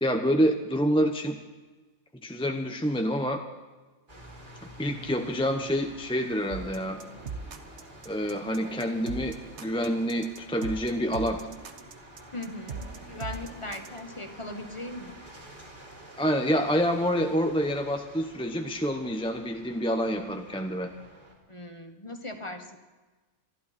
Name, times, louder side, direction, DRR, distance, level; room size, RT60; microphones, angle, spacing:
voice 1, 0.0-1.4 2.2-3.4 4.8-7.0 8.0-11.4 16.2-20.9, equal, 5° left, 4 dB, 0.9 m, -27 dB
sound 1, 4.1-21.3, right 1 dB, 40° right, 3.4 m, -49 dB
sound 2, 6.5-14.0, right 5 dB, 65° right, 1.3 m, -41 dB
voice 2, 12.3-15.1 21.5-22.8, left 2 dB, 25° left, 6 dB, 1.3 m, -39 dB
27.0 x 11.5 x 4.3 m, 1.3 s
omnidirectional pair, 1.3 m